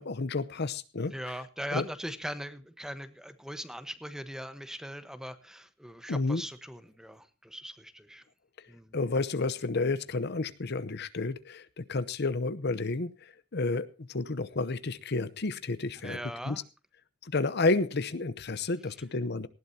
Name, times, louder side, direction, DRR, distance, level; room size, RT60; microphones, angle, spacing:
voice 1, 0.0-1.1 1.7-1.8 6.1-6.4 8.9-16.2 16.5-16.6 17.2-19.5, left 3 dB, 55° left, 15 dB, 0.8 m, -31 dB
voice 2, 1.1-8.2 8.7-9.0 16.0-16.6, equal, 5° right, 11 dB, 1.2 m, -40 dB
19.0 x 15.5 x 2.8 m, 0.31 s
head